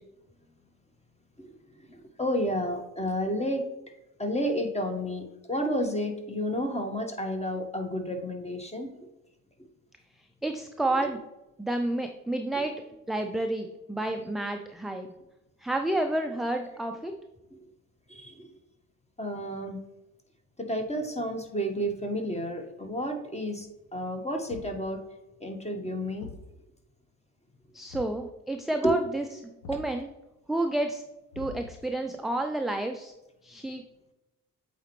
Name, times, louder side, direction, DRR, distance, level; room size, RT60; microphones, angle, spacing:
voice 1, 1.9-3.6 4.2-8.9 10.9-11.0 12.6-12.7 18.1-18.5 19.2-19.8 20.6-23.7 23.9-25.0 25.4-26.3 28.8-29.0, equal, 15° left, 4 dB, 1.4 m, -31 dB
voice 2, 10.4-11.2 11.6-12.7 13.1-15.1 15.6-17.1 27.7-30.1 30.5-31.0 31.4-33.1 33.4-33.8, right 1 dB, ahead, 4 dB, 0.4 m, -30 dB
Thump thud, 24.5-24.9 26.2-26.5 27.9-28.3 29.6-30.0 31.3-31.9, left 4 dB, 80° left, 1.1 m, -44 dB
8.1 x 4.2 x 3.1 m, 0.98 s
hypercardioid pair, 55°, 44 cm